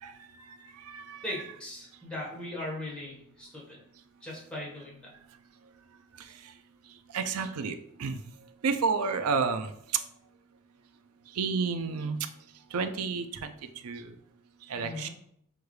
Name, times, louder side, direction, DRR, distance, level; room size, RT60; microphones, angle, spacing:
voice 1, 0.0-1.2 6.2-6.5 7.1-8.2 8.6-10.0 11.3-12.2 12.7-13.5 13.8-14.2 14.6-15.1, right 5 dB, 90° right, 9 dB, 0.4 m, -31 dB
voice 2, 1.2-3.8 4.2-5.1 14.7-15.1, left 1 dB, 5° left, -6 dB, 1.3 m, -39 dB
6.3 x 2.3 x 3.2 m, 0.71 s
head